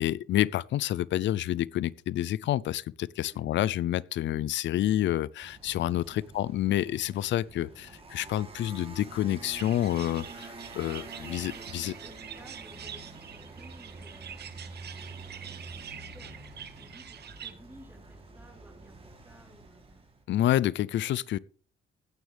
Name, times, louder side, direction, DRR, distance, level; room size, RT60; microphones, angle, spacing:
voice 1, 0.0-11.9 20.3-21.4, left 13 dB, 65° left, 0.5 m, -28 dB
sound 1, 5.4-20.2, right 3 dB, 30° right, 3.3 m, -47 dB
sound 2, 9.5-17.5, right 8 dB, 55° right, 1.3 m, -45 dB
voice 2, 11.5-20.0, right 1 dB, 10° right, 3.9 m, -56 dB
16.0 x 9.5 x 3.4 m
cardioid pair, 90°, 20 cm